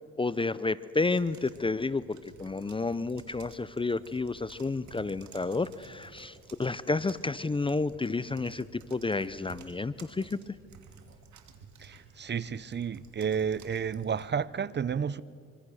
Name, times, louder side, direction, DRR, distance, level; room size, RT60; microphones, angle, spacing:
voice 1, 0.2-10.4, left 3 dB, 15° left, 0.6 m, -31 dB
sound 1, 1.2-14.3, right 5 dB, 70° right, 2.6 m, -53 dB
voice 2, 11.8-15.2, right 7 dB, 35° right, 0.7 m, -31 dB
25.0 x 24.5 x 6.4 m
cardioid pair, 90°, 30 cm